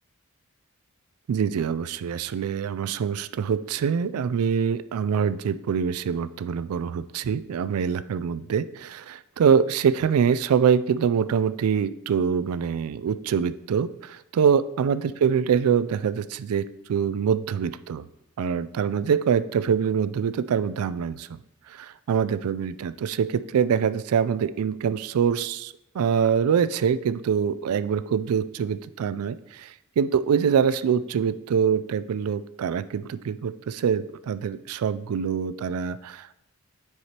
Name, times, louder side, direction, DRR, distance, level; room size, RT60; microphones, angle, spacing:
voice 1, 1.3-18.0 18.4-21.4 21.7-36.4, right 7 dB, 75° right, 14 dB, 0.3 m, -24 dB
9.4 x 4.8 x 2.9 m, 0.83 s
head